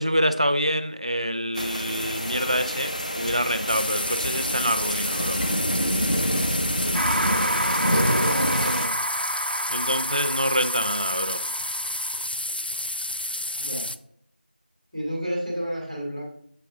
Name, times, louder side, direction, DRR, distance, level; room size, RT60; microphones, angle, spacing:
voice 1, 0.0-5.4 9.7-11.4, equal, 35° right, 9 dB, 0.4 m, -26 dB
sound 1, 1.5-8.9, equal, 45° left, 0.8 m, -27 dB
sound 2, 3.7-14.0, left 1 dB, 65° left, 0.4 m, -30 dB
sound 3, 6.9-12.3, right 1 dB, 90° right, 0.9 m, -29 dB
voice 2, 8.1-8.9 13.6-13.9 14.9-16.2, equal, ahead, -30 dB, 0.8 m, -30 dB
7.6 x 4.8 x 3.6 m, 0.68 s
figure-of-eight pair, 180°, 6 cm